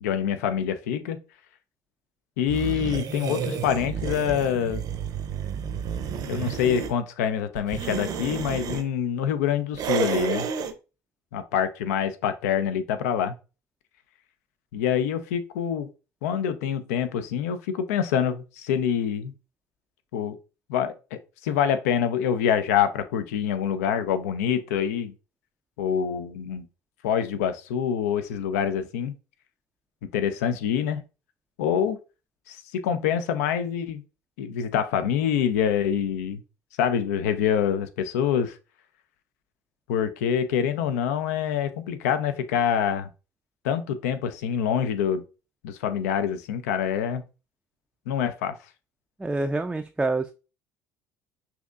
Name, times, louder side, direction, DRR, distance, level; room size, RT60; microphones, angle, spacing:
voice 1, 0.0-1.2 2.4-4.8 6.3-10.5 11.3-13.3 14.7-15.9 16.2-19.3 20.1-20.4 20.7-25.1 25.8-26.7 27.0-29.1 30.0-31.0 31.6-32.0 32.5-34.0 34.4-36.4 36.8-38.5 39.9-43.1 43.6-45.2 45.6-47.2 48.1-48.6, left 8 dB, 75° left, 0.5 m, -26 dB
sound 1, 2.5-6.9 7.6-8.8 9.7-10.7, right 7 dB, 50° right, 0.6 m, -31 dB
voice 2, 49.2-50.3, right 2 dB, 10° right, 0.4 m, -26 dB
5.9 x 2.7 x 2.4 m
hypercardioid pair, 65°, 8 cm